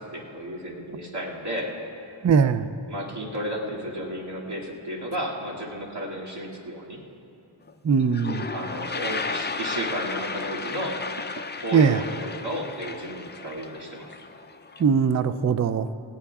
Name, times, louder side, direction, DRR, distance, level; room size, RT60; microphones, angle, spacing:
voice 1, 0.0-1.7 2.9-7.0 8.5-11.0 11.6-14.1, equal, 55° right, -5 dB, 2.5 m, -33 dB
voice 2, 2.2-2.7 7.8-8.5 11.7-12.0 14.8-15.9, right 6 dB, 40° right, 12 dB, 0.4 m, -20 dB
Toilet flush, 7.7-7.8 8.0-14.8, left 4 dB, 25° left, 0.4 m, -34 dB
18.5 x 17.0 x 2.4 m, 2.7 s
wide cardioid pair, 80°, 47 cm